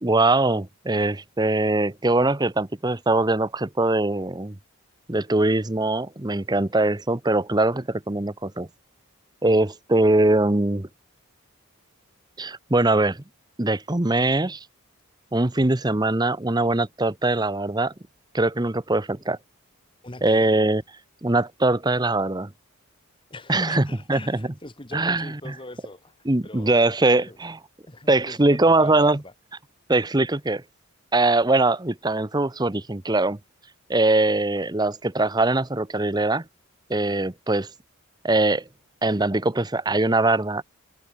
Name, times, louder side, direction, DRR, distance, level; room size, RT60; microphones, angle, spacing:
voice 1, 0.0-4.6 5.1-8.7 9.4-10.9 12.4-13.2 13.6-14.7 15.3-17.9 18.3-19.4 20.2-20.8 21.2-22.5 23.5-24.2 24.9-25.5 26.2-27.6 28.1-29.2 29.9-30.6 31.1-33.4 33.9-36.4 36.9-37.7 38.2-38.7 39.0-40.6, right 2 dB, 20° right, 0.8 m, -22 dB
voice 2, 20.0-20.6 23.3-27.4 27.9-29.3, left 2 dB, 20° left, 2.2 m, -42 dB
head